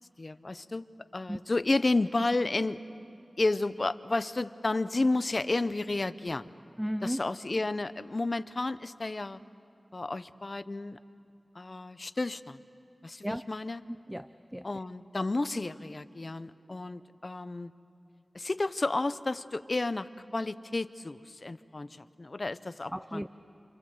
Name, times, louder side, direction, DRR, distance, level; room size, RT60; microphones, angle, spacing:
voice 1, 0.2-0.8 1.1-2.8 3.4-6.5 7.0-9.4 9.9-11.0 11.5-12.6 13.0-13.8 14.6-17.7 18.3-23.2, left 2 dB, 45° left, 13 dB, 0.7 m, -31 dB
voice 2, 6.8-7.2 13.2-13.5 13.9-14.7 22.9-23.3, equal, 5° right, 11 dB, 0.5 m, -35 dB
28.0 x 27.5 x 7.8 m, 2.6 s
wide cardioid pair, 75°, 0 cm